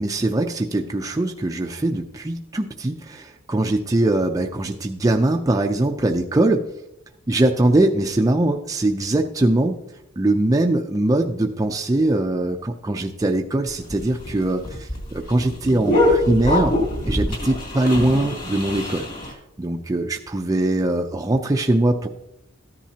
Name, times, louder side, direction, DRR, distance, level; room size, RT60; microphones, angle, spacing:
voice 1, 0.0-6.6 7.3-9.8 10.2-16.7 17.1-19.1 19.6-22.1, right 1 dB, 15° right, 3 dB, 0.4 m, -21 dB
sound 1, 13.7-19.3, left 1 dB, 40° left, 2.6 m, -24 dB
13.5 x 10.5 x 2.8 m, 0.86 s
head